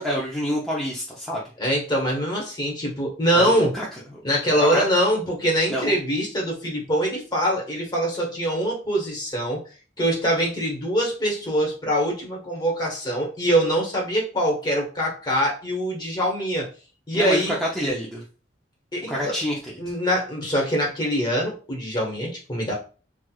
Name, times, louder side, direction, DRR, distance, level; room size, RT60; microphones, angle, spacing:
voice 1, 0.0-1.4 3.3-3.9 4.6-4.8 5.7-5.9 17.1-18.2 19.1-19.8, equal, ahead, -6 dB, 0.6 m, -27 dB
voice 2, 1.6-3.7 4.2-9.6 10.0-16.7 17.1-17.6 18.9-19.3 19.8-22.7, equal, 25° left, -2 dB, 1.2 m, -23 dB
4.3 x 2.4 x 2.3 m, 0.35 s
head